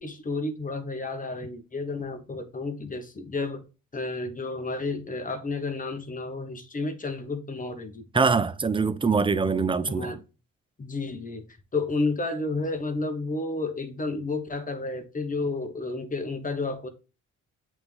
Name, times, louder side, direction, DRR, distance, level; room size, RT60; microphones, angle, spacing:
voice 1, 0.0-3.6 3.9-8.2 9.8-10.2 10.8-11.4 11.7-16.9, left 3 dB, 25° left, 1.1 m, -31 dB
voice 2, 8.1-10.2, right 4 dB, 15° right, 0.5 m, -23 dB
7.8 x 3.6 x 3.4 m
cardioid pair, 90°, 30 cm